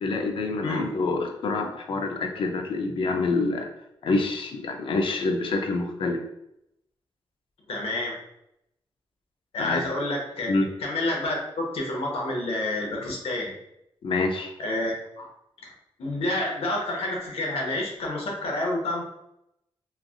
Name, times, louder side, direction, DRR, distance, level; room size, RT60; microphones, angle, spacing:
voice 1, 0.0-3.7 4.0-6.2 9.6-9.8 10.5-10.7 14.0-14.5, left 3 dB, 65° left, 4 dB, 0.5 m, -26 dB
voice 2, 0.6-0.9 7.7-8.2 9.5-10.5 10.8-13.6 14.6-15.3 16.0-19.0, left 1 dB, 85° left, -1 dB, 0.8 m, -29 dB
3.2 x 2.4 x 2.4 m, 0.80 s
wide cardioid pair, 115°, 10 cm